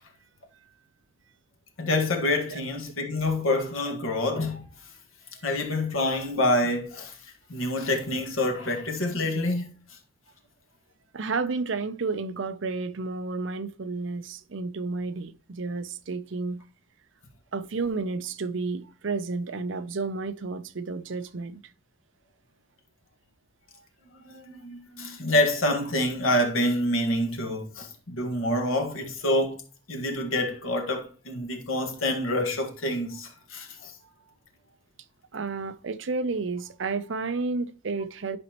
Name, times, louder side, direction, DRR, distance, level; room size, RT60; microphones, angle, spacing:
voice 1, 1.8-4.6 5.4-9.7 24.1-29.6 29.9-33.9, left 1 dB, 90° left, 1.7 m, -27 dB
voice 2, 11.1-16.6 17.5-21.6 35.3-38.4, right 4 dB, 70° right, 0.6 m, -31 dB
11.0 x 5.1 x 3.0 m
head